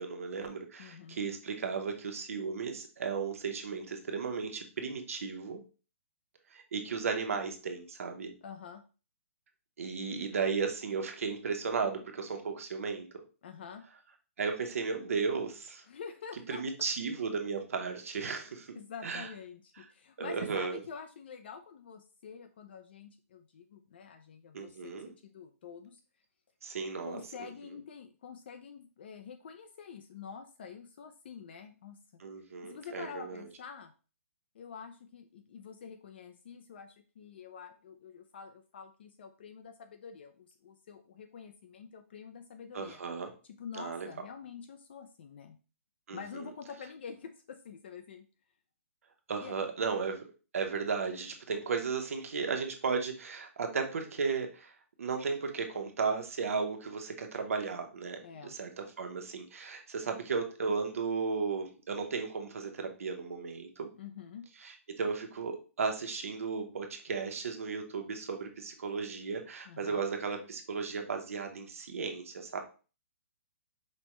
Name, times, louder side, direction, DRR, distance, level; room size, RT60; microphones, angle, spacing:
voice 1, 0.0-5.6 6.5-8.3 9.8-13.2 14.4-15.8 16.5-18.8 19.0-19.3 20.2-20.8 24.5-25.1 26.6-27.5 32.2-33.4 42.7-43.3 43.7-44.1 46.1-46.2 49.3-50.3 50.5-54.7 55.0-63.9 64.6-72.6, right 5 dB, 70° right, 4 dB, 0.9 m, -35 dB
voice 2, 0.8-1.2 8.4-8.8 13.4-13.8 15.9-16.6 18.3-26.0 27.0-32.0 32.6-33.9 34.5-43.0 43.6-45.6 46.1-48.3 49.4-49.5 58.2-58.5 63.9-64.4 69.7-70.1, left 6 dB, 45° left, 7 dB, 0.4 m, -47 dB
5.1 x 2.2 x 3.0 m, 0.35 s
hypercardioid pair, 165°, 8 cm